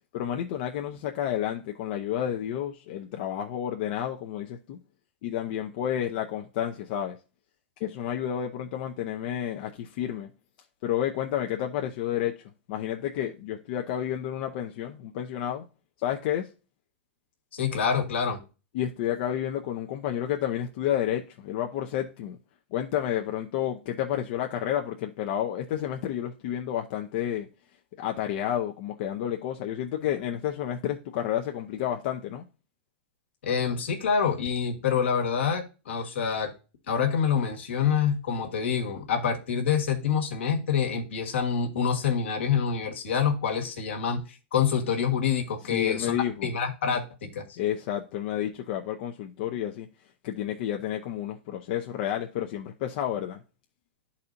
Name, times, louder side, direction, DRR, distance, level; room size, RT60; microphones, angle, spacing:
voice 1, 0.1-4.8 5.2-7.2 7.8-10.3 10.8-15.7 16.0-16.5 18.7-22.4 22.7-27.5 28.0-32.4 45.6-46.5 47.6-49.9 50.2-53.4, left 10 dB, 55° left, 0.7 m, -30 dB
voice 2, 17.5-18.4 33.4-36.5 36.9-46.2 46.4-47.6, left 7 dB, 80° left, 1.5 m, -26 dB
11.5 x 4.2 x 2.6 m
hypercardioid pair, 115°, 6 cm